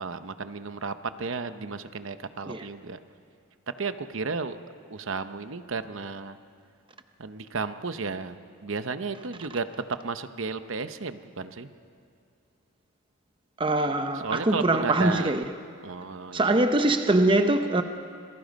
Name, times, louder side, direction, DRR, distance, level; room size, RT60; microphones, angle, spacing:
voice 1, 0.0-3.0 3.8-4.6 4.9-6.4 7.2-8.4 8.6-9.7 10.0-11.7 14.2-15.3 15.8-16.4, right 4 dB, 65° right, 0.8 m, -33 dB
voice 2, 13.6-15.4 16.3-17.8, right 2 dB, 25° right, 0.7 m, -23 dB
27.0 x 20.5 x 5.3 m
head